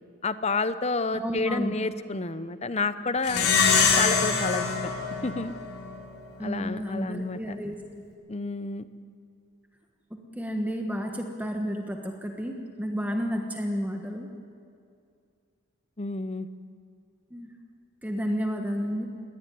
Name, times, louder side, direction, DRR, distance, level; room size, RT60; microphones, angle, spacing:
voice 1, 0.2-3.5 4.0-4.7 5.2-5.5 6.4-7.6 8.3-8.9 16.0-16.5, left 3 dB, 30° left, 13 dB, 0.7 m, -30 dB
voice 2, 1.1-1.8 6.4-7.8 10.1-14.3 17.3-17.5 18.0-19.1, equal, 5° right, 3 dB, 1.3 m, -31 dB
Plucked string instrument, 3.2-6.0, left 5 dB, 85° left, 3.6 m, -24 dB
21.0 x 17.5 x 9.5 m, 2.4 s
head